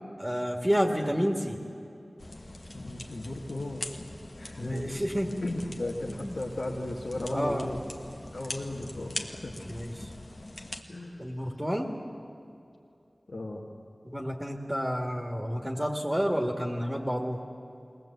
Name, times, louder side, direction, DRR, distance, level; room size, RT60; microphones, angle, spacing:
voice 1, 0.2-1.7 4.6-5.4 6.1-6.4 7.3-7.7 9.7-10.1 11.2-11.9 14.0-17.4, equal, 15° right, 1 dB, 1.9 m, -30 dB
sound 1, 2.2-10.8, left 1 dB, 55° left, 1.4 m, -42 dB
voice 2, 2.7-3.8 4.4-4.9 5.4-7.8 8.3-9.5 10.9-11.2 13.3-13.7 16.4-16.6, left 1 dB, 75° left, -1 dB, 1.7 m, -35 dB
21.0 x 18.5 x 8.1 m, 2.6 s
wide cardioid pair, 40°, 0 cm